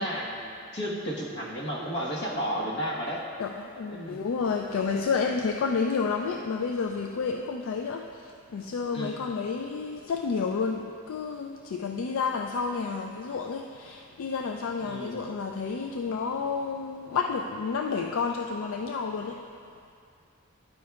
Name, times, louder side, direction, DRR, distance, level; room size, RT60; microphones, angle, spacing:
voice 1, 0.0-3.2 3.9-4.3 8.9-9.3 14.8-15.2, equal, 55° left, -3 dB, 1.3 m, -33 dB
voice 2, 3.4-19.4, left 5 dB, 75° left, 3 dB, 0.4 m, -30 dB
11.5 x 9.3 x 2.4 m, 2.4 s
head